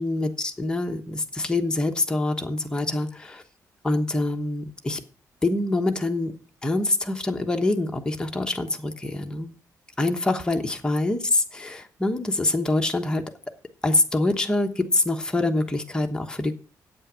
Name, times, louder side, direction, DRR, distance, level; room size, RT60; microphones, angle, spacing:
voice 1, 0.0-3.4 3.8-5.0 5.4-6.3 6.6-9.5 10.0-13.2 13.8-16.5, left 2 dB, 15° left, 4 dB, 1.1 m, -25 dB
8.9 x 8.8 x 6.3 m, 0.39 s
cardioid pair, 150°, 6 cm